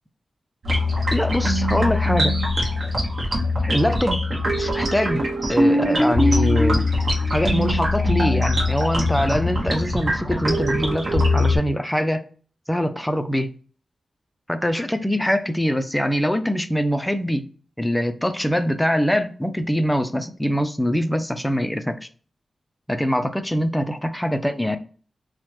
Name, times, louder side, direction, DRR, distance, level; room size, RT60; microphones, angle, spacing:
sound 1, 0.6-11.6, left 1 dB, 55° right, 0.9 m, -21 dB
voice 1, 1.1-2.4 3.6-4.2 4.5-6.9 7.3-12.2 12.7-13.5 14.5-17.4 17.8-22.1 22.9-24.8, equal, 5° left, 0.3 m, -23 dB
3.2 x 2.1 x 2.9 m
wide cardioid pair, 115°, 0 cm